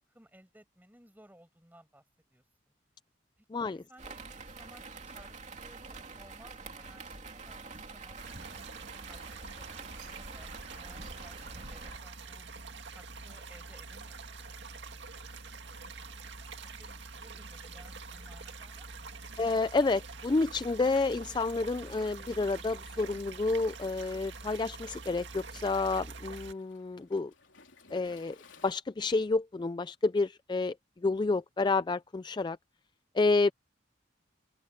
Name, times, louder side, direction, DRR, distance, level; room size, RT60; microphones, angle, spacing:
voice 1, 0.0-2.0 2.3-2.7 3.4-8.2 8.5-12.5 12.9-14.5 14.9-15.4 16.6-19.2, right 1 dB, 10° right, 7.4 m, -59 dB
voice 2, 3.5-3.8 19.4-27.3 27.9-28.4 28.6-30.8 31.0-32.6 33.1-33.5, left 3 dB, 25° left, 0.3 m, -29 dB
sound 1, 4.0-12.0, right 3 dB, 40° right, 2.8 m, -46 dB
sound 2, 8.2-26.5, right 4 dB, 65° right, 2.2 m, -46 dB
Waves surf, 21.7-28.7, left 4 dB, 80° left, 3.5 m, -62 dB
open air
head